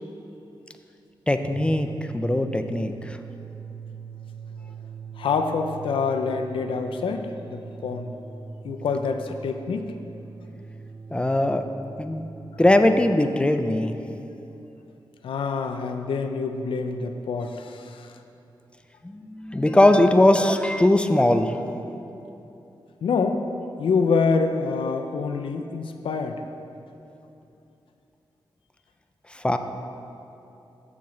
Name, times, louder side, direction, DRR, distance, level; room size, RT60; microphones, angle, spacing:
voice 1, 1.3-3.2 11.1-11.6 12.0-12.3 12.6-13.9 19.0-21.6 29.4-29.6, left 1 dB, 10° left, 7 dB, 0.4 m, -20 dB
sound 1, 1.4-13.2, right 5 dB, 40° right, 0.5 m, -41 dB
voice 2, 5.2-8.1 8.6-9.9 15.2-18.1 23.0-23.4 23.8-26.4, left 4 dB, 75° left, 6 dB, 0.4 m, -26 dB
7.1 x 7.0 x 3.1 m, 2.9 s
cardioid pair, 80°, 9 cm